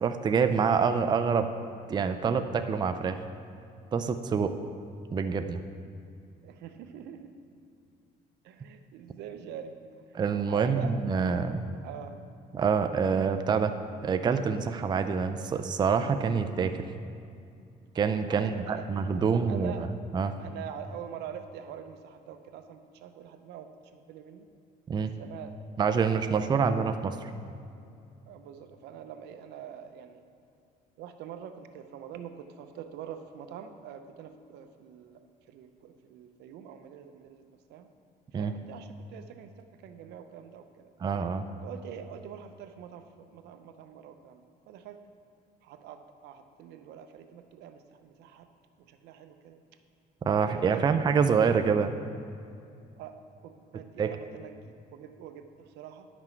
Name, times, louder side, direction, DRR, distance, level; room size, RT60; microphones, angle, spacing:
voice 1, 0.0-1.5 1.9-3.2 3.9-4.5 5.1-5.6 10.1-11.7 12.5-13.7 14.0-16.7 17.9-19.9 20.1-20.4 24.9-25.1 25.8-27.3 38.3-38.5 41.0-41.4 50.2-52.0 54.0-54.1, right 6 dB, 25° right, 8 dB, 0.4 m, -26 dB
voice 2, 6.4-7.3 8.4-10.1 10.4-10.9 11.8-12.2 18.3-18.8 19.1-19.2 19.5-19.9 20.4-24.5 25.0-25.7 26.0-26.6 28.3-30.2 31.0-37.4 37.7-37.9 38.4-40.9 41.6-45.0 45.6-48.5 48.8-49.6 50.3-50.9 53.0-56.1, right 8 dB, 80° right, 8 dB, 0.6 m, -45 dB
10.5 x 6.1 x 4.4 m, 2.5 s
cardioid pair, 110°, 17 cm